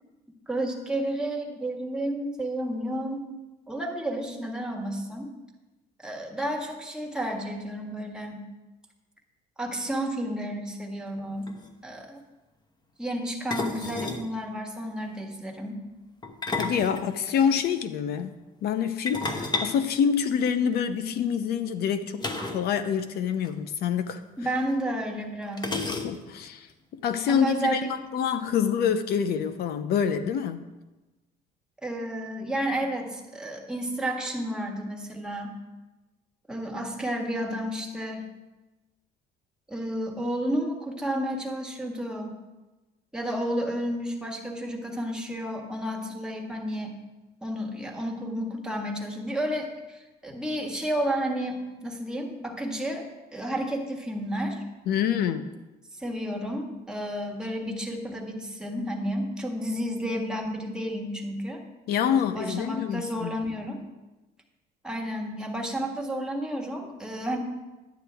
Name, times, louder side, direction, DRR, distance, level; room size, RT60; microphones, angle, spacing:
voice 1, 0.5-3.2 3.7-5.3 6.0-8.4 9.6-11.5 11.8-12.2 13.0-15.8 24.4-25.8 27.3-27.9 31.8-35.5 36.5-38.3 39.7-42.4 43.1-47.0 47.4-53.0 53.3-54.6 55.9-61.6 62.2-63.8 64.8-67.4, equal, 5° right, 1 dB, 1.6 m, -31 dB
sound 1, 11.2-11.3 11.5-11.7 13.5-14.3 16.2-17.6 19.1-20.7 22.2-22.7 23.0-23.1 23.4-23.5 24.5-24.6 25.6-26.4, left 3 dB, 25° left, 1.0 m, -32 dB
voice 2, 16.6-18.3 18.6-22.3 22.5-24.2 26.0-30.7 54.9-55.5 61.9-63.4, left 7 dB, 70° left, 11 dB, 0.6 m, -26 dB
11.5 x 9.4 x 3.4 m, 1.1 s
cardioid pair, 110°, 17 cm